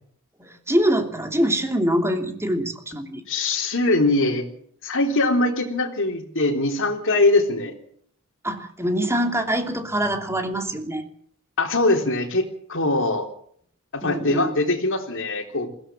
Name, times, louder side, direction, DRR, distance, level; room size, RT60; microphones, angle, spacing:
voice 1, 0.4-3.2 8.4-11.0 14.0-14.5, equal, 10° right, 5 dB, 2.9 m, -24 dB
voice 2, 3.3-4.4 4.8-7.7 11.6-12.4 12.7-13.3 13.9-15.7, left 2 dB, 65° left, 3 dB, 3.6 m, -22 dB
21.5 x 16.0 x 7.6 m, 0.63 s
head